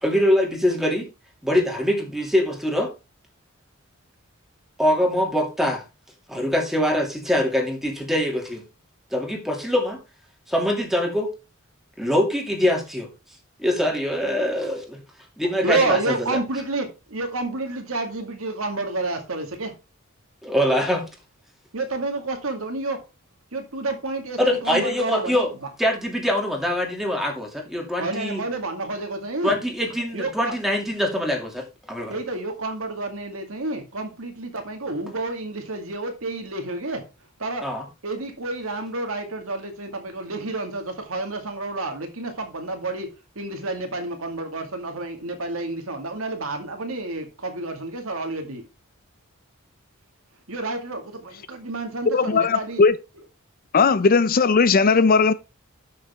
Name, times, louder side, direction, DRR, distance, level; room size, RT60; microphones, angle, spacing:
voice 1, 0.0-1.1 1.4-2.9 4.8-5.8 6.3-8.6 9.1-10.0 10.5-11.3 12.0-13.1 13.6-15.0 15.4-16.4 20.4-21.0 24.4-25.5 25.8-28.4 29.4-32.1 37.6-37.8, equal, ahead, 2.5 m, -23 dB
voice 2, 15.6-19.7 21.7-23.0 23.5-25.7 28.0-29.6 30.1-30.6 32.1-37.1 37.4-37.7 38.0-48.6 50.5-52.8, right 2 dB, 70° right, 2.1 m, -29 dB
voice 3, 52.1-52.9 53.7-55.3, left 4 dB, 40° left, 0.5 m, -17 dB
11.5 x 6.6 x 3.6 m
head